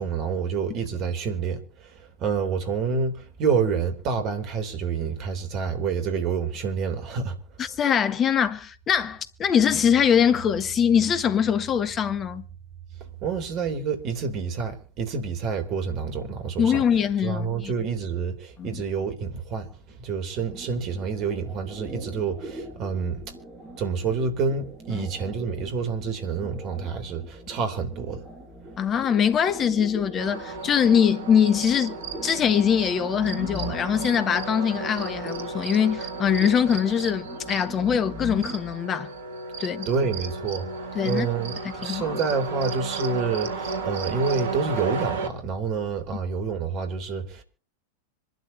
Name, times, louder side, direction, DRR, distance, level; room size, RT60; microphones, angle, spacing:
voice 1, 0.0-7.4 13.2-16.8 17.2-19.7 20.0-23.2 23.8-28.2 39.9-40.7 41.0-47.4, right 5 dB, 35° right, 3.5 m, -28 dB
voice 2, 7.6-12.4 16.6-17.7 18.6-18.8 24.9-25.1 28.8-32.0 32.2-39.1 39.6-39.9 40.9-41.3 41.8-42.2, left 8 dB, 25° left, 1.5 m, -23 dB
sound 1, 20.3-38.8, right 1 dB, 20° right, 7.7 m, -41 dB
sound 2, 30.2-45.3, right 4 dB, 60° right, 2.3 m, -34 dB
26.0 x 12.5 x 2.9 m
figure-of-eight pair, 90°, 0 cm